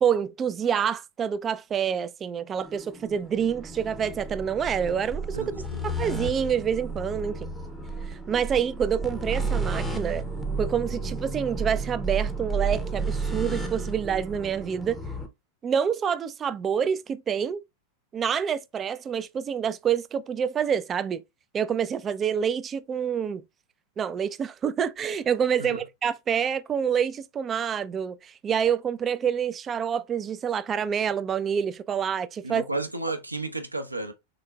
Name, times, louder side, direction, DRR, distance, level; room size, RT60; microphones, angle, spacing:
voice 1, 0.0-5.5 5.8-7.5 8.0-10.2 10.6-15.0 15.6-17.6 18.1-21.2 21.5-23.4 24.0-32.6, right 7 dB, 25° right, 0.3 m, -27 dB
sound 1, 2.6-15.3, right 3 dB, 5° left, 0.7 m, -32 dB
voice 2, 5.3-5.9 25.6-25.8 32.4-34.1, right 2 dB, 85° right, 0.7 m, -32 dB
3.9 x 3.6 x 2.2 m
figure-of-eight pair, 90°, 0 cm